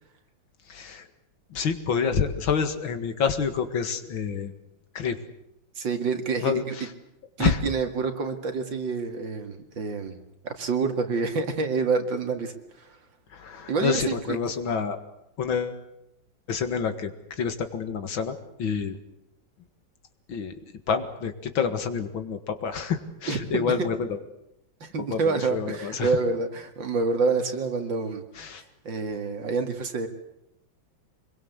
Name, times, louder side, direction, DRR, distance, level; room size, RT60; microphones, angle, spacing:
voice 1, 0.7-1.1 1.5-4.5 4.9-5.2 6.4-6.9 7.4-7.6 13.3-15.0 15.4-15.8 16.5-19.0 20.3-20.5 20.9-24.2 25.1-26.2 28.4-28.6, left 6 dB, 85° left, 9 dB, 2.6 m, -28 dB
voice 2, 5.8-6.8 7.4-13.0 13.7-14.4 23.3-23.7 24.8-28.2 28.8-30.1, right 4 dB, 70° right, 6 dB, 2.9 m, -27 dB
25.5 x 22.0 x 8.1 m, 0.80 s
omnidirectional pair, 2.1 m